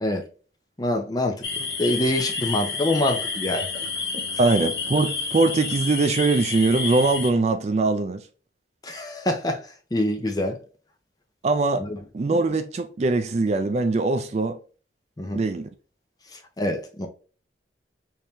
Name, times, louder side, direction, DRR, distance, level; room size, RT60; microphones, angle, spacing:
voice 1, 0.8-3.9 4.1-4.2 8.8-10.6 11.8-12.0 15.2-15.4 16.3-17.1, left 1 dB, 20° left, 0.6 m, -26 dB
sound 1, 1.4-7.3, left 5 dB, 65° left, 0.7 m, -30 dB
voice 2, 4.4-8.2 11.4-11.8 12.1-14.6 15.3-15.7, right 3 dB, 40° right, 0.3 m, -22 dB
3.0 x 2.7 x 3.4 m
head